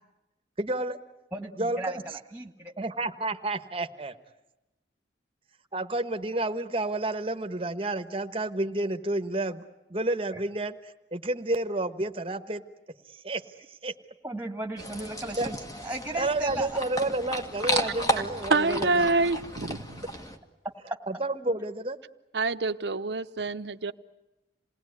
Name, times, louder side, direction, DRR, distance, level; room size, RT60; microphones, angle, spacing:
voice 1, 0.6-1.0 1.5-1.9 2.8-4.2 5.7-9.6 9.9-12.6 13.1-13.9 15.4-15.5 16.1-19.1 21.1-22.0, right 2 dB, 30° right, 1.2 m, -30 dB
voice 2, 1.3-2.7 10.3-10.4 14.2-15.6 15.8-16.8, right 1 dB, 10° right, 2.0 m, -36 dB
sound 1, 14.8-20.4, equal, 20° left, 1.7 m, -33 dB
voice 3, 18.5-20.0 22.3-23.9, right 3 dB, 70° right, 0.9 m, -26 dB
28.0 x 19.5 x 9.5 m
head